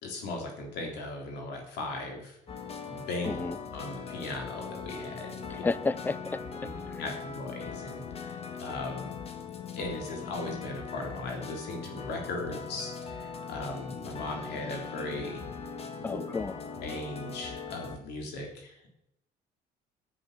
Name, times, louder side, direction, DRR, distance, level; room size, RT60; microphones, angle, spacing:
voice 1, 0.0-2.4 2.8-3.4 3.7-5.6 7.0-9.1 9.8-15.4 16.0-16.2 16.8-18.8, left 2 dB, 80° left, 2 dB, 3.5 m, -38 dB
sound 1, 2.5-18.0, left 5 dB, 35° left, 1.5 m, -40 dB
voice 2, 3.3-3.6 5.5-6.4 6.9-7.0 16.0-16.5, left 3 dB, 10° left, 19 dB, 0.4 m, -31 dB
10.0 x 8.1 x 6.7 m, 0.81 s
cardioid pair, 110°, 17 cm